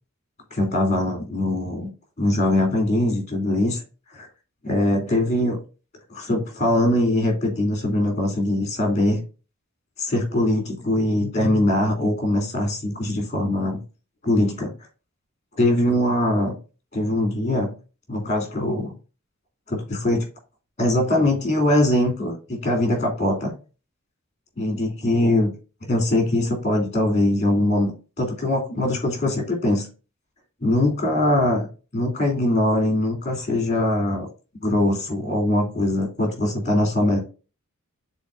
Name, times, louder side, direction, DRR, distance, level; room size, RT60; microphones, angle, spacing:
voice 1, 0.5-1.9 2.2-3.8 4.1-4.3 4.6-5.6 6.1-9.2 10.0-13.8 14.2-14.7 15.6-16.5 16.9-17.7 18.1-18.9 19.7-20.3 20.8-23.5 24.6-25.5 25.8-29.9 30.6-31.7 31.9-34.3 34.6-37.2, left 1 dB, 30° left, 2 dB, 2.7 m, -22 dB
10.5 x 3.9 x 2.5 m, 0.33 s
head